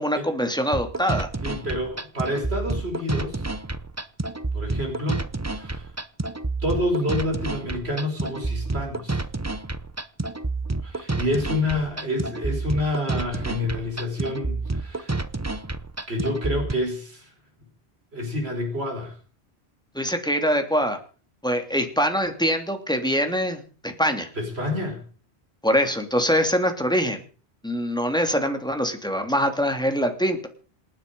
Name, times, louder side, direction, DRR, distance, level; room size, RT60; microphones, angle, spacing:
voice 1, 0.0-1.3 19.9-21.0 21.4-24.3 25.6-27.2 27.6-30.5, equal, 5° left, 5 dB, 2.6 m, -24 dB
sound 1, 0.7-16.7, right 3 dB, 15° right, 0.7 m, -29 dB
voice 2, 1.4-3.5 4.5-5.2 5.5-5.9 6.6-9.2 10.8-15.2 16.1-17.3 18.1-19.2 24.4-25.0, left 1 dB, 70° right, 2 dB, 5.5 m, -28 dB
27.5 x 9.8 x 5.4 m, 0.41 s
omnidirectional pair, 1.1 m